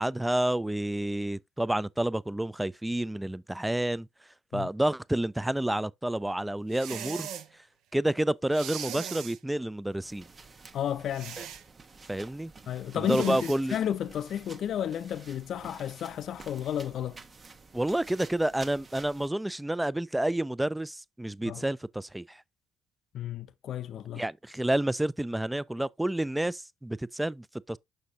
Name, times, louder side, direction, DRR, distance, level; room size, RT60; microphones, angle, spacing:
voice 1, 0.0-4.1 4.5-7.3 7.9-10.2 12.1-12.5 12.9-13.8 17.7-22.4 24.2-27.8, right 1 dB, 10° right, 0.3 m, -29 dB
sound 1, 6.7-7.5 8.5-9.4 11.1-11.6 13.0-13.6, right 9 dB, 65° right, 0.6 m, -39 dB
sound 2, 10.0-19.3, right 4 dB, 35° right, 0.9 m, -51 dB
voice 2, 10.7-11.4 12.7-17.2 21.5-21.6 23.1-24.2, left 10 dB, 60° left, 0.4 m, -32 dB
6.4 x 5.9 x 2.6 m
hypercardioid pair, 50°, 0 cm